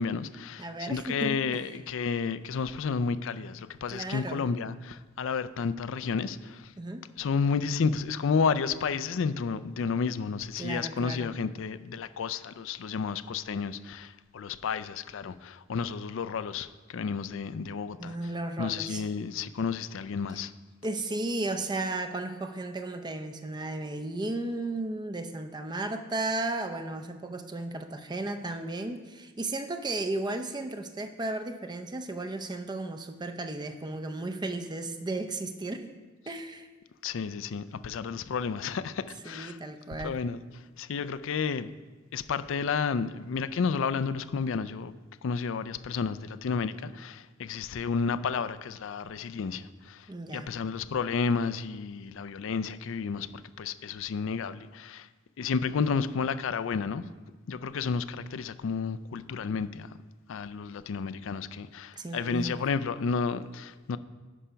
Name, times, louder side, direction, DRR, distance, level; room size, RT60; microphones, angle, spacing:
voice 1, 0.0-6.7 7.2-18.2 18.6-20.5 37.0-39.6 40.0-40.4 40.8-41.7 42.1-44.9 45.2-53.3 53.6-55.1 55.4-57.1 57.5-59.9 60.3-64.0, left 5 dB, 70° left, 0.4 m, -31 dB
voice 2, 0.6-1.7 3.9-4.5 6.8-7.1 10.6-11.3 18.0-19.0 20.8-35.9 36.3-36.7 39.2-40.2 50.1-50.5 62.0-62.6, right 2 dB, 20° right, 0.5 m, -34 dB
10.0 x 5.2 x 5.7 m
head